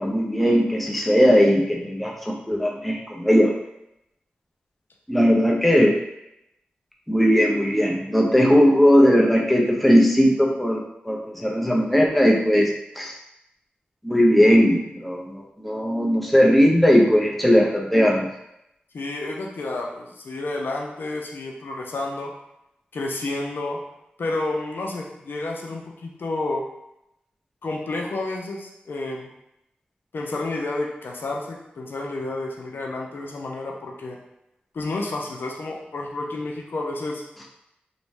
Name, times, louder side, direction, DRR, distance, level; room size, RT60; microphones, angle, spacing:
voice 1, 0.0-3.5 5.1-5.9 7.1-12.7 13.0-13.1 14.0-18.3, equal, 5° left, -1 dB, 0.6 m, -18 dB
voice 2, 18.9-22.3 22.9-23.8 24.2-26.6 27.6-29.3 30.1-34.2 34.7-37.2, left 2 dB, 70° left, 0 dB, 0.5 m, -30 dB
2.5 x 2.2 x 3.2 m, 0.84 s
cardioid pair, 55°, 4 cm